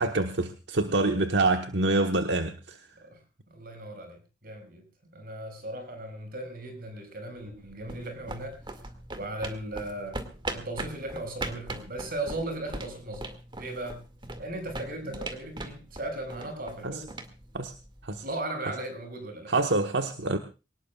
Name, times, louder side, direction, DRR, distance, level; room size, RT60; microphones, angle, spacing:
voice 1, 0.0-2.9 16.8-17.0 17.5-17.7 18.0-18.2 19.5-20.4, right 2 dB, 85° right, 6 dB, 1.3 m, -26 dB
voice 2, 3.5-4.8 5.1-8.6 9.1-10.3 10.5-13.3 13.6-14.0 14.4-17.1 18.2-19.5, right 1 dB, 55° right, 6 dB, 6.8 m, -37 dB
sound 1, 7.4-18.2, right 2 dB, 30° right, 2.2 m, -40 dB
24.0 x 19.0 x 2.4 m, 0.32 s
head